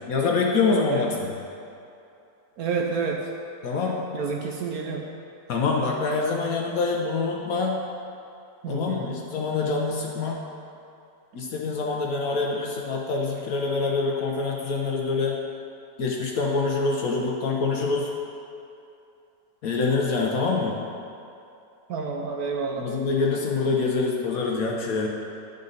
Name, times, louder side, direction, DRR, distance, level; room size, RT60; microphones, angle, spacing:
voice 1, 0.1-1.4 3.6-4.0 5.5-7.8 8.7-10.4 11.3-15.4 16.0-18.1 19.6-20.7 22.8-25.1, left 4 dB, 60° left, -1 dB, 1.0 m, -25 dB
voice 2, 0.9-1.2 2.6-3.2 4.1-5.1 8.6-9.2 21.9-22.9, right 5 dB, 70° right, 0 dB, 0.9 m, -29 dB
11.0 x 5.2 x 3.9 m, 2.7 s
omnidirectional pair, 2.0 m